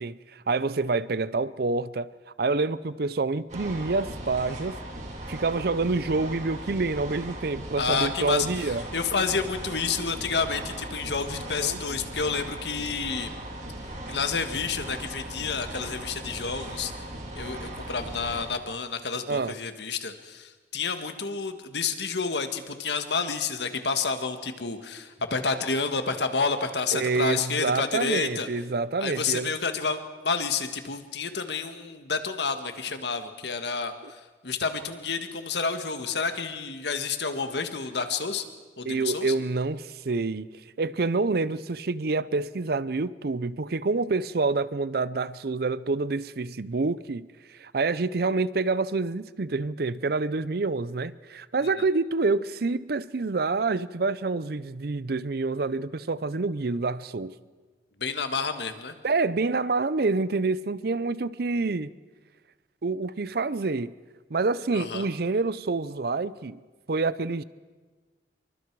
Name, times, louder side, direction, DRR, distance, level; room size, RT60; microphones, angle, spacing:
voice 1, 0.0-2.1 2.4-4.7 5.3-8.8 11.6-11.8 19.3-19.5 26.9-29.5 34.0-34.1 38.9-40.5 40.8-47.3 47.6-57.3 59.0-61.9 62.8-63.9 64.3-66.6 66.9-67.4, right 3 dB, 60° right, 0.6 m, -27 dB
sound 1, 3.5-18.5, right 1 dB, 40° right, 3.7 m, -38 dB
voice 2, 7.8-13.3 14.1-16.9 17.3-28.5 29.0-38.4 38.8-39.3 58.0-58.9 64.7-65.0, left 5 dB, 70° left, 1.6 m, -29 dB
26.5 x 23.5 x 4.7 m
head